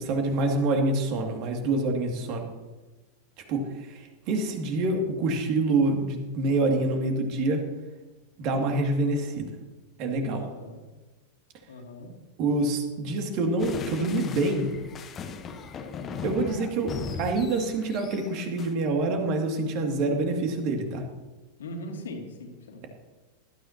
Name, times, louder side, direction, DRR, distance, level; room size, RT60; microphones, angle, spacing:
voice 1, 0.0-2.5 3.5-7.6 8.4-9.5 10.0-10.4 12.4-14.7 16.2-21.0, right 2 dB, 40° right, 3 dB, 2.5 m, -26 dB
voice 2, 10.3-10.8 11.7-12.1 21.6-22.9, left 1 dB, 65° left, 2 dB, 2.7 m, -40 dB
sound 1, 13.6-18.7, left 5 dB, 25° left, 1.2 m, -38 dB
19.5 x 13.0 x 3.0 m, 1.2 s
figure-of-eight pair, 90°, 0 cm